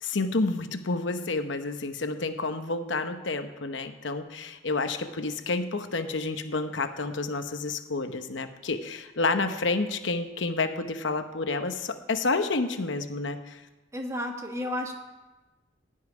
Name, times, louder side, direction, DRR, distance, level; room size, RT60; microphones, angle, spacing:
voice 1, 0.0-13.6, left 3 dB, 70° left, 8 dB, 0.9 m, -29 dB
voice 2, 13.9-14.9, left 1 dB, 15° right, 3 dB, 1.3 m, -32 dB
15.5 x 5.7 x 9.6 m, 1.1 s
head